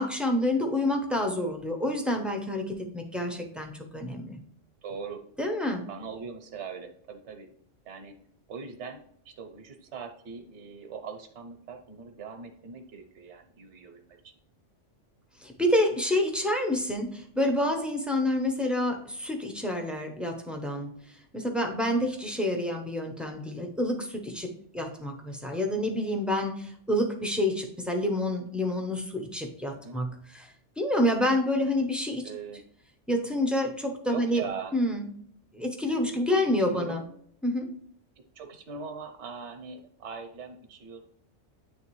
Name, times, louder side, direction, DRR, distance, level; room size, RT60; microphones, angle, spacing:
voice 1, 0.0-4.4 5.4-5.9 15.4-32.3 33.1-34.4 34.7-35.1 35.5-37.0 37.4-37.7, left 1 dB, ahead, 2 dB, 0.5 m, -28 dB
voice 2, 4.8-5.2 5.9-7.5 7.8-8.2 8.5-9.0 9.2-14.3 29.7-30.0 32.2-32.6 34.1-34.8 36.3-36.4 36.7-37.0 38.3-41.0, right 6 dB, 70° right, 5 dB, 1.1 m, -41 dB
9.0 x 3.4 x 3.0 m, 0.64 s
omnidirectional pair, 1.3 m